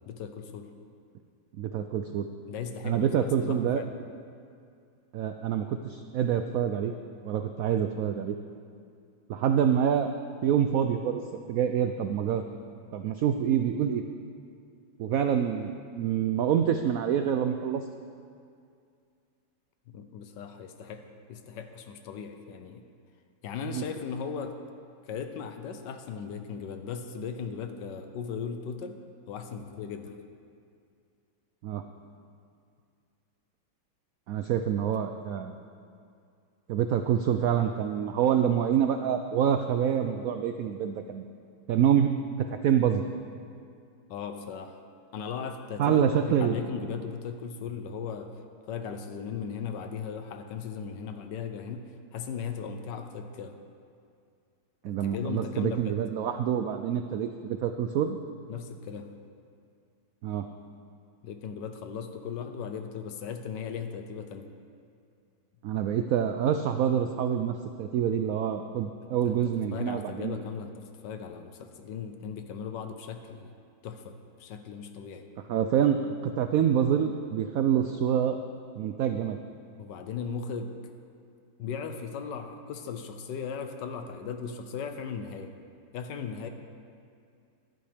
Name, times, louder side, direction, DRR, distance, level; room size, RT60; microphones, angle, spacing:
voice 1, 0.1-0.7 2.5-3.9 19.9-21.0 21.3-22.8 23.4-24.6 25.0-29.0 29.3-30.1 44.1-44.8 45.1-48.3 48.7-53.6 55.0-56.0 57.2-57.3 58.5-59.1 61.2-64.5 69.2-69.4 69.7-73.5 73.8-75.3 79.8-80.7 81.6-85.5 85.9-86.5, left 6 dB, 70° left, 7 dB, 1.3 m, -37 dB
voice 2, 1.6-2.3 2.8-3.8 5.1-6.9 7.2-8.4 9.3-10.1 10.4-11.2 11.5-12.4 12.9-14.0 15.0-17.8 23.7-23.8 31.6-31.8 34.3-35.5 36.7-41.2 41.7-42.1 42.5-43.0 45.8-46.6 54.8-58.2 60.2-60.5 65.6-70.4 75.5-78.4 78.8-79.4, right 9 dB, 85° right, 7 dB, 0.7 m, -26 dB
14.5 x 11.5 x 3.5 m, 2.3 s
omnidirectional pair, 2.0 m